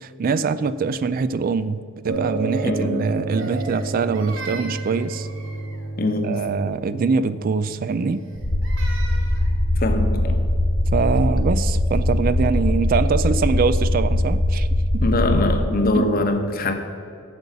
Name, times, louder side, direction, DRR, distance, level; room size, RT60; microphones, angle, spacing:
voice 1, 0.0-5.3 6.2-8.2 10.9-14.7 14.9-15.0 16.0-16.2, right 5 dB, 40° right, 15 dB, 0.3 m, -23 dB
sound 1, 2.1-11.2, right 2 dB, 80° right, 2.6 m, -31 dB
voice 2, 2.6-3.1 6.0-6.4 9.8-10.4 15.0-16.7, left 2 dB, 45° left, 6 dB, 1.0 m, -22 dB
Crying sobbing, 3.4-5.9 8.1-9.6, right 3 dB, 60° right, 1.3 m, -38 dB
sound 2, 8.4-15.6, left 1 dB, 90° left, 1.9 m, -21 dB
7.9 x 7.0 x 7.3 m, 2.3 s
head